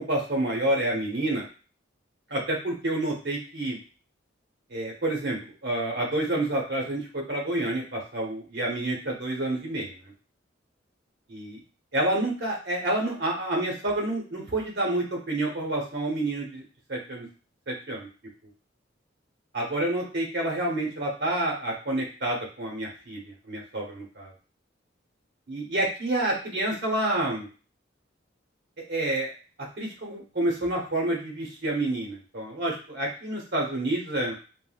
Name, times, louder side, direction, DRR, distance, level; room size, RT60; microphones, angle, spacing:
voice 1, 0.0-1.5 2.3-3.8 4.7-10.0 11.3-11.6 11.9-16.6 16.9-17.3 17.7-18.1 19.5-24.3 25.5-27.5 28.9-29.3 29.8-34.3, right 1 dB, 55° right, -1 dB, 0.9 m, -28 dB
3.5 x 2.1 x 2.3 m, 0.36 s
head